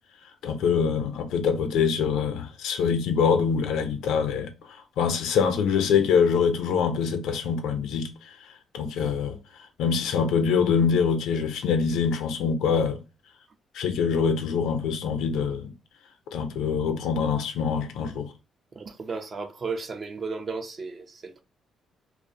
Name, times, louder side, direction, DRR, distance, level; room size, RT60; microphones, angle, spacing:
voice 1, 0.4-8.1 8.7-9.4 9.8-13.0 13.7-15.7 16.3-18.3, left 6 dB, 85° left, 0.5 m, -24 dB
voice 2, 18.7-21.4, right 4 dB, 40° right, 0.5 m, -34 dB
2.4 x 2.0 x 2.6 m
cardioid pair, 90°, 0 cm